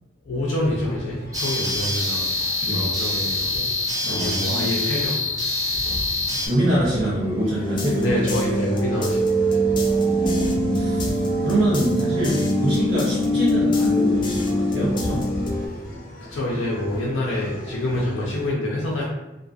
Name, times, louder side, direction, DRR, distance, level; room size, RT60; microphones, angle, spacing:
voice 1, 0.2-3.7 4.1-5.2 5.7-6.0 6.3-6.4 8.0-9.8 16.3-19.0, left 1 dB, 80° left, -4 dB, 0.5 m, -27 dB
sound 1, 0.6-18.5, left 1 dB, 50° left, 0.8 m, -38 dB
sound 2, 1.3-6.5, left 2 dB, 20° right, 0.6 m, -25 dB
voice 2, 4.0-4.7 6.5-8.2 9.8-15.3, right 1 dB, 70° right, -10 dB, 0.8 m, -25 dB
sound 3, 7.6-15.7, equal, 25° left, 0.3 m, -23 dB
2.5 x 2.4 x 2.5 m, 0.98 s
head